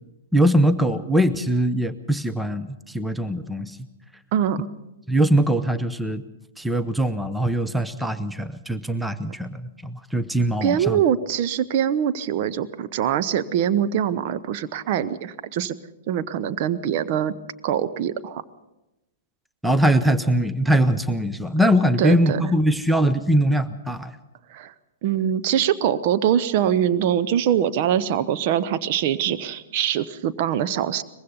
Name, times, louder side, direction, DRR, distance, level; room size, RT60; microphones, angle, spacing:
voice 1, 0.3-3.8 5.1-6.2 6.6-11.0 19.6-24.1, equal, 5° right, 11 dB, 0.7 m, -21 dB
voice 2, 4.3-4.7 10.6-15.7 16.1-17.3 17.6-18.4 22.0-22.5 24.5-24.7 25.0-31.0, right 9 dB, 40° right, 12 dB, 0.9 m, -23 dB
23.0 x 21.0 x 5.4 m, 0.97 s
figure-of-eight pair, 110°, 0 cm